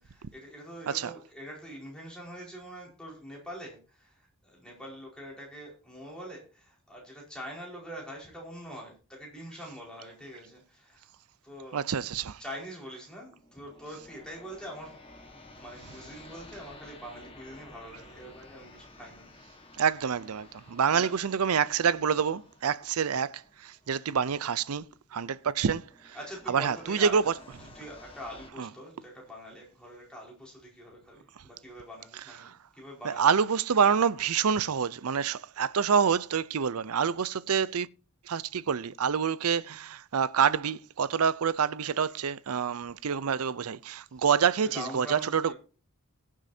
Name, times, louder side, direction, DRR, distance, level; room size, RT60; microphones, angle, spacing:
voice 1, 0.0-11.1 11.4-11.8 12.4-14.9 15.3-19.3 20.9-21.1 26.1-27.3 27.6-33.4 44.6-45.5, equal, 5° left, 4.7 m, -44 dB
voice 2, 11.7-12.4 19.8-23.3 23.6-24.9 25.1-25.8 26.5-27.3 28.6-28.7 33.0-37.9 38.3-45.5, right 6 dB, 85° right, 0.5 m, -27 dB
sound 1, 13.3-28.5, left 2 dB, 25° left, 1.5 m, -53 dB
21.0 x 7.4 x 2.8 m
head